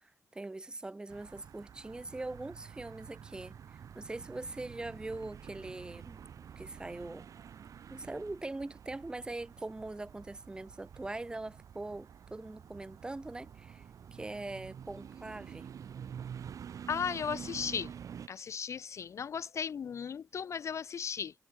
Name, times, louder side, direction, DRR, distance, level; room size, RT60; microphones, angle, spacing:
voice 1, 0.0-6.2 6.6-7.3 7.9-15.7, right 2 dB, 15° right, 0.5 m, -42 dB
sound 1, 1.1-18.3, right 8 dB, 60° right, 0.7 m, -48 dB
voice 2, 16.9-17.9 18.3-21.3, left 7 dB, 50° left, 0.4 m, -36 dB
wide cardioid pair, 160°, 6 cm